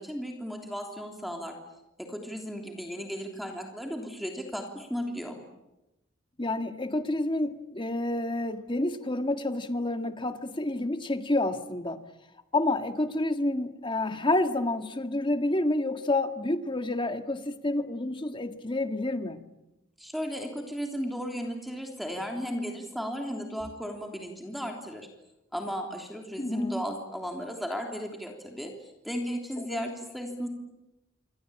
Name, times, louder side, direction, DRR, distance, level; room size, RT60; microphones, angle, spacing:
voice 1, 0.0-1.6 2.0-5.4 20.0-25.1 25.5-30.5, equal, ahead, 2 dB, 3.3 m, -35 dB
voice 2, 6.4-12.0 12.5-19.4 26.4-26.8 29.6-29.8, left 2 dB, 25° left, 8 dB, 1.8 m, -29 dB
27.5 x 25.0 x 8.8 m, 0.94 s
head